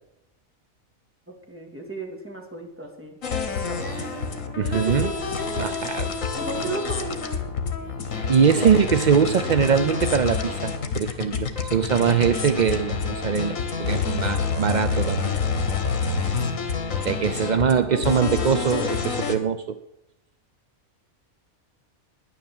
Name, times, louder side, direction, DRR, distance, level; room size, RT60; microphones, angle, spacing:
voice 1, 1.3-3.2 3.7-3.9 4.7-5.1 6.4-7.2 8.5-9.3 17.7-18.9, right 2 dB, 10° right, 1 dB, 2.3 m, -34 dB
sound 1, 3.2-19.3, left 5 dB, 70° left, 1.8 m, -28 dB
Female singing, 3.6-10.0 10.7-10.8, right 1 dB, 30° right, 2.7 m, -41 dB
voice 2, 4.6-5.1 5.5-6.1 8.3-15.4 17.0-19.8, right 7 dB, 55° right, 11 dB, 0.5 m, -22 dB
10.5 x 10.0 x 7.7 m, 0.87 s
omnidirectional pair, 1.4 m